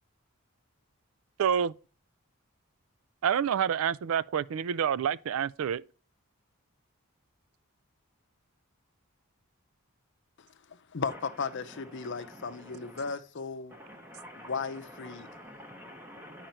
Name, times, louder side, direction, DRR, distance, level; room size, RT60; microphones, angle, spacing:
voice 1, 1.4-1.7 3.2-5.8, right 8 dB, 70° right, 0.3 m, -28 dB
voice 2, 10.7-13.7 14.3-15.3, left 5 dB, 55° left, 0.6 m, -36 dB
voice 3, 11.9-13.1 13.7-16.5, equal, 10° right, 0.7 m, -48 dB
9.2 x 5.0 x 4.3 m
head